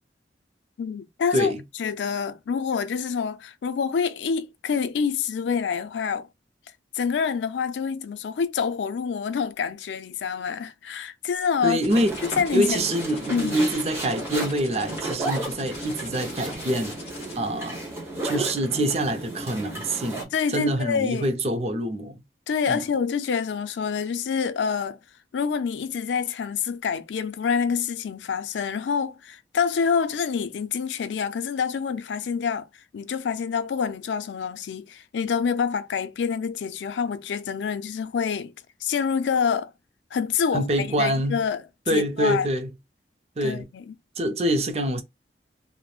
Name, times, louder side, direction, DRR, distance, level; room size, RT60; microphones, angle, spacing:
voice 1, 0.8-1.5 1.8-6.3 6.9-11.8 12.2-12.9 13.3-13.6 20.3-21.3 22.5-25.0 25.3-32.7 32.9-38.5 38.8-39.7 40.1-41.6 41.9-42.5 43.4-43.8, left 6 dB, 90° left, 0.4 m, -27 dB
voice 2, 1.3-1.6 11.6-12.2 12.5-17.0 17.4-17.8 18.2-22.2 22.7-22.8 40.5-41.4 41.9-42.7 43.4-43.7 44.2-45.0, right 1 dB, 35° right, 0.5 m, -25 dB
sound 1, 11.8-17.3, left 4 dB, 35° left, 0.7 m, -43 dB
sound 2, 11.9-20.2, right 2 dB, 15° right, 1.0 m, -33 dB
3.0 x 2.0 x 2.3 m
head